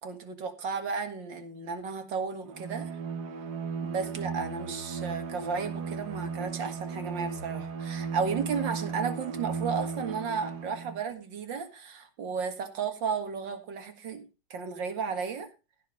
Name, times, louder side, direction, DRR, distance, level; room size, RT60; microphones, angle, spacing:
voice 1, 0.0-2.9 3.8-14.2 14.5-15.5, right 5 dB, 80° right, 6 dB, 2.5 m, -33 dB
Bowed string instrument, 2.4-11.0, right 5 dB, 65° right, 1.5 m, -36 dB
15.5 x 5.3 x 6.3 m, 0.31 s
omnidirectional pair, 2.0 m